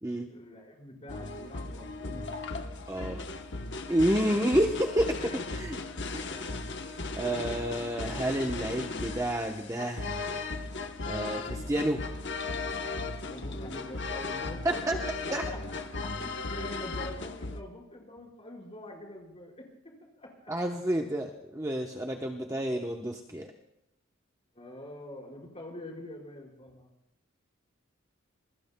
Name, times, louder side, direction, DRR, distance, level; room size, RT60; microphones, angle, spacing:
voice 1, 0.3-2.3 4.2-4.4 5.2-5.4 6.2-6.5 13.3-15.1 15.4-15.6 15.9-20.3 24.5-26.9, left 1 dB, 30° left, -2 dB, 5.1 m, -45 dB
sound 1, 1.1-17.6, left 3 dB, 55° left, 1.0 m, -36 dB
voice 2, 2.9-3.2 3.9-5.2 5.5-5.8 6.1-6.4 7.2-10.2 11.1-12.0 14.6-15.0 15.3-15.4 20.5-23.5, right 1 dB, 15° right, 1 dB, 0.9 m, -29 dB
27.5 x 21.5 x 2.3 m, 0.85 s
head